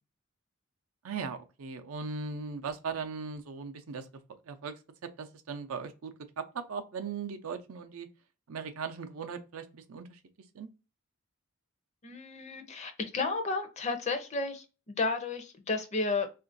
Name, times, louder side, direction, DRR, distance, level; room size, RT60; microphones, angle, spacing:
voice 1, 1.0-4.1 4.5-4.7 5.2-8.1 8.5-10.2 10.5-10.7, right 5 dB, 75° right, 0.5 m, -38 dB
voice 2, 12.0-14.6 15.0-16.3, left 3 dB, 30° left, 0.5 m, -32 dB
3.7 x 2.5 x 2.5 m
head